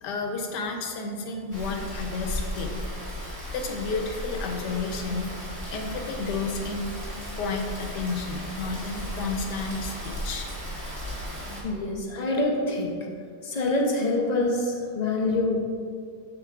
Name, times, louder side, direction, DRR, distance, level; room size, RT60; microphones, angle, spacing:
voice 1, 0.0-2.8 3.5-5.3 5.7-6.9 7.3-10.5, left 3 dB, 90° left, 3 dB, 1.4 m, -31 dB
Rain, 1.5-11.6, equal, 10° right, 1.6 m, -35 dB
voice 2, 11.6-12.9 13.4-15.6, left 2 dB, 70° left, -1 dB, 0.4 m, -25 dB
7.8 x 7.0 x 2.4 m, 2.2 s
omnidirectional pair, 1.8 m